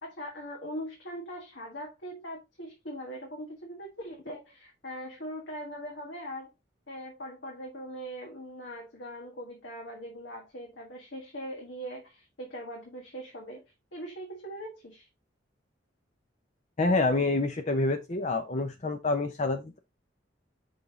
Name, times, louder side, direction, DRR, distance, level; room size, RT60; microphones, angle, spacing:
voice 1, 0.0-6.5 6.9-13.6 13.9-15.1, equal, 70° left, 1.7 m, -41 dB
voice 2, 16.8-19.8, left 2 dB, 40° left, 0.6 m, -27 dB
5.5 x 5.2 x 3.7 m
head